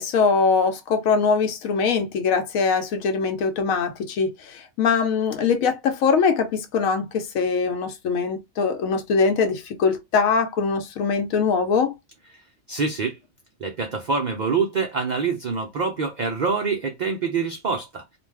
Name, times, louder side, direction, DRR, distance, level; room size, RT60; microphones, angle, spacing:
voice 1, 0.0-11.9, left 5 dB, 85° left, 1.0 m, -22 dB
voice 2, 12.7-13.2 13.6-18.0, right 5 dB, 75° right, 0.4 m, -25 dB
2.5 x 2.2 x 3.2 m
omnidirectional pair, 1.4 m